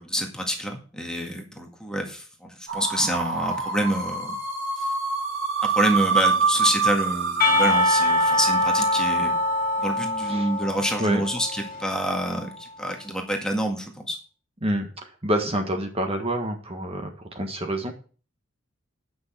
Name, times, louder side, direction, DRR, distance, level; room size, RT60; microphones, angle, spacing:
voice 1, 0.0-4.4 4.8-4.9 5.6-9.4 9.8-14.2, equal, 5° left, 2 dB, 1.9 m, -27 dB
sound 1, 2.7-9.7, right 5 dB, 70° right, 2.1 m, -26 dB
Percussion, 7.4-12.3, left 1 dB, 45° left, 2.8 m, -23 dB
voice 2, 15.2-17.9, right 1 dB, 30° right, 4 dB, 1.5 m, -27 dB
9.2 x 6.3 x 7.4 m, 0.39 s
head